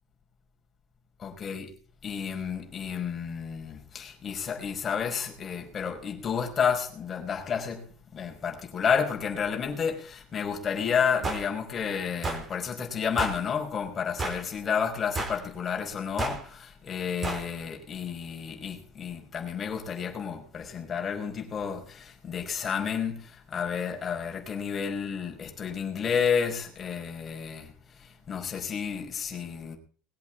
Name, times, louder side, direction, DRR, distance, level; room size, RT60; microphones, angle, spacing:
voice 1, 1.2-1.7 2.0-7.9 8.1-29.8, left 7 dB, 20° left, 5.3 m, -31 dB
sound 1, 11.2-11.5 12.2-12.5 13.2-13.4 14.2-14.5 15.2-15.4 16.2-16.4 17.2-17.5, right 3 dB, 20° right, 4.4 m, -31 dB
21.5 x 8.3 x 7.5 m
cardioid pair, 165°, 0 cm